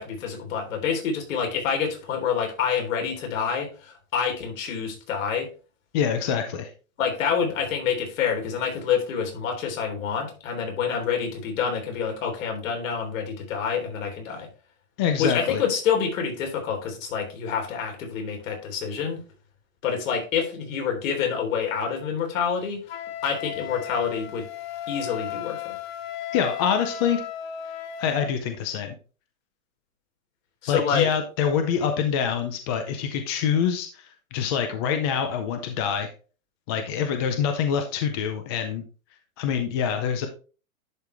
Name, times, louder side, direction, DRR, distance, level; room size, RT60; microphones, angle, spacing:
voice 1, 0.0-5.5 7.0-14.5 15.2-19.2 19.8-22.8 23.2-24.5 24.9-25.8 30.6-31.1, left 7 dB, 65° left, 2 dB, 3.6 m, -27 dB
voice 2, 5.9-6.7 15.0-15.6 26.3-27.2 28.0-28.9 30.7-34.0 34.3-36.1 36.7-38.8 39.4-40.3, left 7 dB, 20° left, 6 dB, 0.4 m, -25 dB
Wind instrument woodwind instrument, 22.9-28.3, left 10 dB, 45° left, 1.0 m, -35 dB
11.0 x 4.7 x 3.3 m, 0.35 s
supercardioid pair, 160°, 43 cm